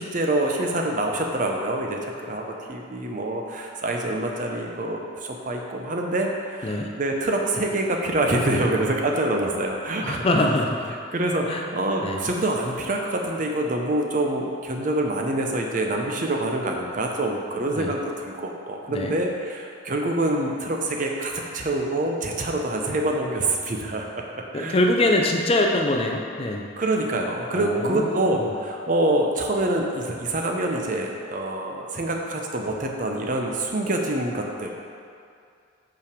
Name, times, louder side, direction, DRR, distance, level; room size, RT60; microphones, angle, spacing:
voice 1, 0.0-10.2 11.1-24.8 26.8-34.7, right 1 dB, 40° right, 1 dB, 0.6 m, -26 dB
voice 2, 10.0-10.9 11.5-11.6 12.0-12.2 17.7-17.9 18.9-19.1 24.5-26.7 27.5-28.5, left 1 dB, 30° left, 2 dB, 0.4 m, -24 dB
5.6 x 5.0 x 5.1 m, 2.4 s
head